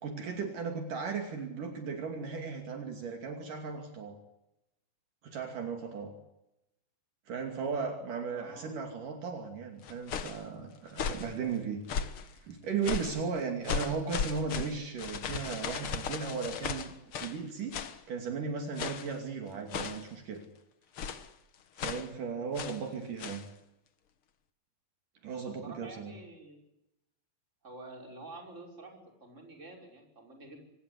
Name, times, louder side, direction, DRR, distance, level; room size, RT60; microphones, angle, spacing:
voice 1, 0.0-4.2 5.2-6.1 7.3-11.8 12.2-20.4 21.8-23.4 25.2-26.1, right 5 dB, 65° right, 5 dB, 4.2 m, -36 dB
voice 2, 8.3-8.8 22.8-23.3 25.3-26.6 27.6-30.6, right 2 dB, 20° right, 2 dB, 5.8 m, -49 dB
sound 1, 9.8-10.4 10.9-11.3 11.9-12.3 12.8-13.2 13.6-17.4 17.7-18.0 18.8-19.1 19.7-20.1 21.0-21.3 21.8-22.1 22.5-22.8 23.2-23.5, left 7 dB, 55° left, 1.7 m, -36 dB
25.0 x 19.0 x 9.8 m, 0.87 s
omnidirectional pair, 4.1 m